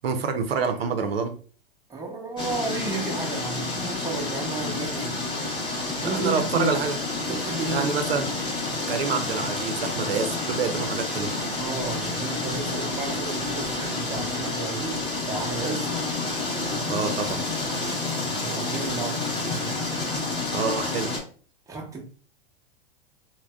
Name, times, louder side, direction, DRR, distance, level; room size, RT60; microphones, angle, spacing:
voice 1, 0.0-1.4 6.0-7.0 7.7-8.3 8.9-11.3 16.9-17.4 20.5-21.1, right 5 dB, 80° right, 0.6 m, -27 dB
voice 2, 1.9-5.2 6.0-6.8 7.2-8.0 11.6-15.9 18.2-19.8 21.7-22.0, right 3 dB, 10° right, 0.8 m, -33 dB
sound 1, 2.4-21.2, left 2 dB, 15° left, 0.9 m, -29 dB
3.3 x 2.1 x 2.3 m
hypercardioid pair, 105°, 29 cm